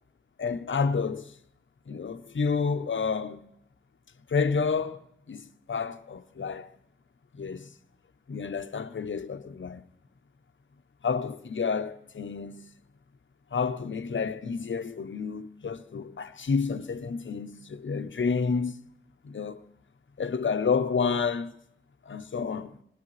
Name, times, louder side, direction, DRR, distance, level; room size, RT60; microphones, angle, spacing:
voice 1, 0.4-1.3 1.9-3.4 4.3-5.0 5.3-6.7 7.4-7.7 8.3-9.8 11.0-12.6 13.5-18.8 19.2-19.6 20.2-21.5 22.1-22.8, left 5 dB, 65° left, 0.7 m, -29 dB
21.0 x 19.5 x 3.2 m
wide cardioid pair, 80°, 21 cm